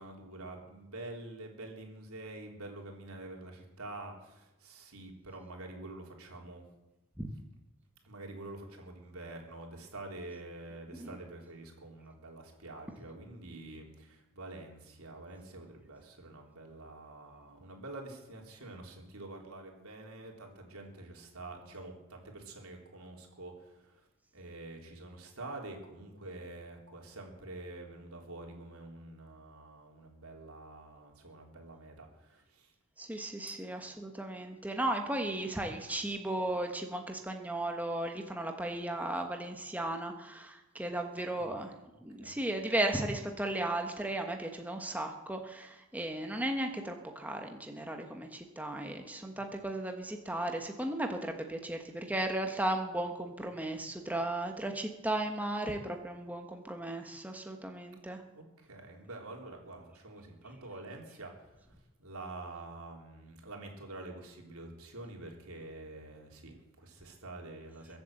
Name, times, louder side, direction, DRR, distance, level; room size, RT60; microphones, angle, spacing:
voice 1, 0.0-6.6 8.0-24.1 24.3-32.7 41.4-41.6 42.2-42.4 49.3-49.4 58.3-61.7 62.0-68.0, right 2 dB, 85° right, 1 dB, 3.6 m, -47 dB
voice 2, 33.0-41.7 42.0-58.2, right 1 dB, 5° right, 4 dB, 1.2 m, -35 dB
22.5 x 7.9 x 7.8 m, 0.99 s
head